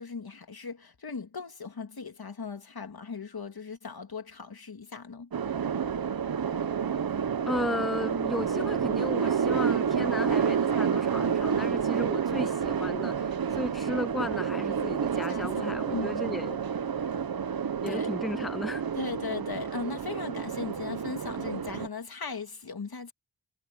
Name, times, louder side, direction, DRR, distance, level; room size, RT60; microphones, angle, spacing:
voice 1, 0.0-5.3 15.3-16.3 17.9-18.1 18.9-23.1, left 5 dB, 80° left, 2.5 m, -38 dB
sound 1, 5.3-21.9, right 7 dB, 75° right, 0.9 m, -29 dB
voice 2, 7.4-16.6 17.8-18.8, left 1 dB, ahead, 0.4 m, -35 dB
wide cardioid pair, 65°, 36 cm